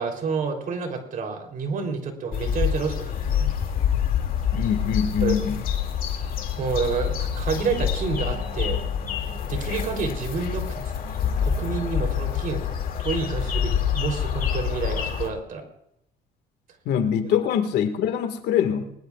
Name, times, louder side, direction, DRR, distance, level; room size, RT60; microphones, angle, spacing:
voice 1, 0.0-3.5 5.2-5.4 6.6-8.8 9.5-10.9 11.4-12.6 13.0-15.6, right 5 dB, 55° right, 3 dB, 3.4 m, -29 dB
sound 1, 2.3-15.3, left 8 dB, 55° left, 2.4 m, -26 dB
voice 2, 4.5-5.6 16.9-18.9, left 8 dB, 80° left, 8 dB, 1.8 m, -24 dB
21.0 x 20.5 x 2.4 m, 0.79 s
cardioid pair, 110°, 17 cm